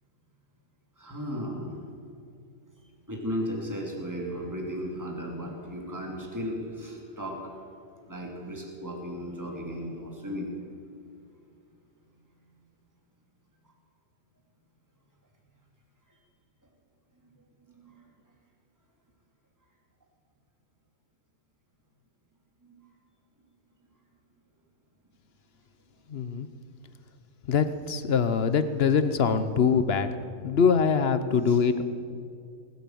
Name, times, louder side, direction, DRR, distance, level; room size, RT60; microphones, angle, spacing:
voice 1, 1.0-1.8 3.1-7.5 8.1-10.5 17.7-18.0 22.6-22.7 31.5-31.6, equal, 15° right, -1 dB, 2.5 m, -35 dB
voice 2, 26.1-26.5 27.5-30.1 30.4-31.8, left 6 dB, 55° left, 11 dB, 0.9 m, -23 dB
20.0 x 8.7 x 7.8 m, 2.4 s
omnidirectional pair, 1.4 m